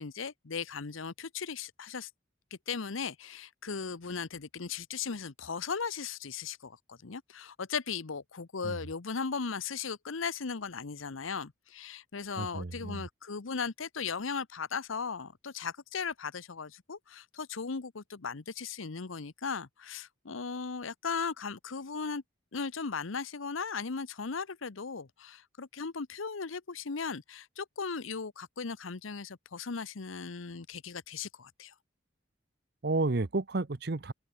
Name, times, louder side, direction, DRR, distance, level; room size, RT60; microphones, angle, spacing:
voice 1, 0.0-2.1 2.7-22.2 22.5-31.7, left 5 dB, 85° left, 0.9 m, -37 dB
voice 2, 12.4-13.0 32.8-34.1, right 3 dB, 55° right, 0.8 m, -31 dB
open air
head